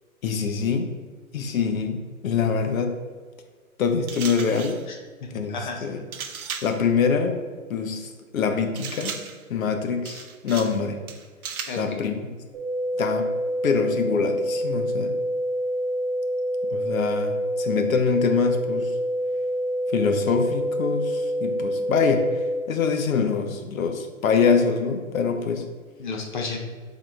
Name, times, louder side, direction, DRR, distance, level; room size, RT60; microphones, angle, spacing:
voice 1, 0.2-0.9 1.3-3.0 3.8-4.8 5.3-5.6 5.8-6.0 6.6-7.4 7.7-9.2 9.5-11.0 11.8-12.2 13.0-13.3 13.6-15.1 16.7-18.9 19.9-25.7, left 5 dB, 70° left, 6 dB, 0.7 m, -24 dB
sound 1, 4.1-4.9 6.1-6.8 8.8-9.4 10.0-10.8 11.1-11.9, right 6 dB, 85° right, 0.6 m, -36 dB
voice 2, 4.9-5.9 11.7-11.9 26.0-26.6, left 4 dB, 35° left, 2 dB, 0.5 m, -33 dB
sound 2, 12.5-22.5, equal, 10° right, 1.1 m, -27 dB
3.7 x 3.6 x 3.2 m, 1.5 s
hypercardioid pair, 140°, 42 cm